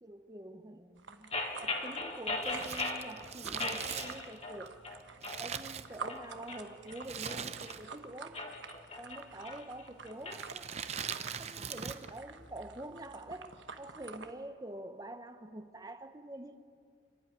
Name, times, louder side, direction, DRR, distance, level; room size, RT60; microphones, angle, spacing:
voice 1, 0.0-1.3 1.6-4.8 5.4-8.5 9.0-10.8 11.1-16.6, right 1 dB, 20° right, 1.0 m, -46 dB
sound 1, 1.0-14.3, right 5 dB, 75° right, 1.2 m, -49 dB
sound 2, 1.3-3.1 3.6-4.6 4.8-5.4 5.9-7.8 8.2-10.4, left 3 dB, 35° left, 2.0 m, -38 dB
Crumpling crinkling, 2.4-6.4 7.0-8.1 8.3-8.4 9.2-9.6 10.2-12.2 12.4-12.5, right 7 dB, 35° right, 0.7 m, -41 dB
29.0 x 12.0 x 9.6 m
head